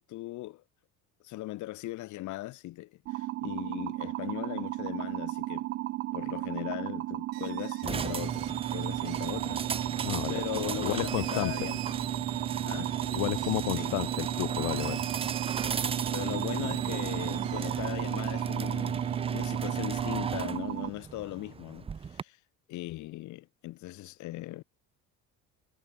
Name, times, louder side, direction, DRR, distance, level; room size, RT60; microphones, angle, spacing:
voice 1, 0.1-0.6 1.2-5.7 6.1-9.9 10.3-11.8 12.7-13.1 13.4-13.9 16.0-22.4 22.7-24.6, left 17 dB, 50° left, 1.5 m, -39 dB
sound 1, 3.1-20.9, right 17 dB, 40° right, 0.4 m, -35 dB
sound 2, 7.3-19.6, right 22 dB, 70° right, 2.5 m, -43 dB
sound 3, 7.8-22.2, right 6 dB, 15° right, 0.8 m, -35 dB
voice 2, 10.0-10.3 10.8-11.7 13.1-15.0, left 25 dB, 70° left, 1.0 m, -32 dB
cardioid pair, 175°, 36 cm